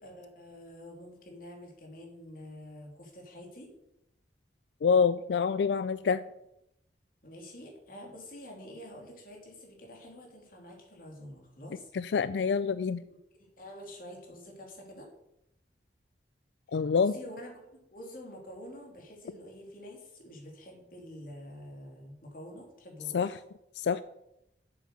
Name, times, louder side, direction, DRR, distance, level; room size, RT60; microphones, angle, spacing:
voice 1, 0.0-3.7 7.2-11.9 13.1-13.2 13.6-15.1 17.0-23.3, left 1 dB, 50° left, 0 dB, 2.9 m, -47 dB
voice 2, 4.8-6.2 11.9-13.0 16.7-17.1 23.1-23.3 23.8-24.0, left 6 dB, 75° left, 14 dB, 0.4 m, -26 dB
8.0 x 7.7 x 6.7 m, 0.83 s
head